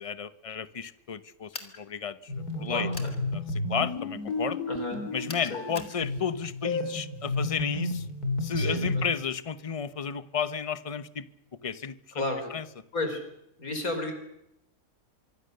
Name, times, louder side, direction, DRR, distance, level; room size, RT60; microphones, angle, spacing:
voice 1, 0.0-2.9 3.3-3.4 3.7-4.6 5.1-8.1 8.4-11.2 11.6-12.6, left 6 dB, 25° left, 14 dB, 0.9 m, -33 dB
sound 1, 1.5-1.8 2.9-3.2 5.3-6.0, left 3 dB, 45° left, 2.5 m, -41 dB
sound 2, 2.3-9.1, left 1 dB, 90° left, 3.8 m, -32 dB
voice 2, 2.7-3.1 4.7-5.0 5.5-5.6 8.5-9.0 12.1-12.5 12.9-13.2 13.6-14.1, left 2 dB, 70° left, 6 dB, 5.0 m, -32 dB
25.0 x 24.0 x 6.7 m, 0.83 s
omnidirectional pair, 1.6 m